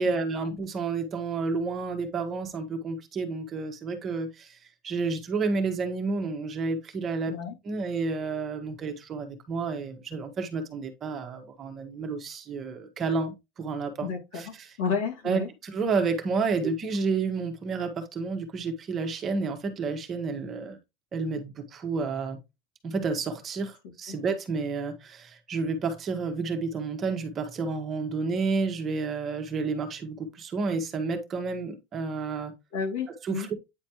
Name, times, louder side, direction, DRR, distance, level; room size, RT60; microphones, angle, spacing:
voice 1, 0.0-4.6 4.8-7.3 7.6-14.7 15.2-20.8 21.1-22.4 22.8-32.5 33.2-33.6, right 4 dB, 25° right, 1.4 m, -30 dB
voice 2, 14.0-15.5 32.7-33.5, left 6 dB, 75° left, 2.8 m, -31 dB
9.3 x 4.2 x 3.1 m
supercardioid pair, 155°, 0 cm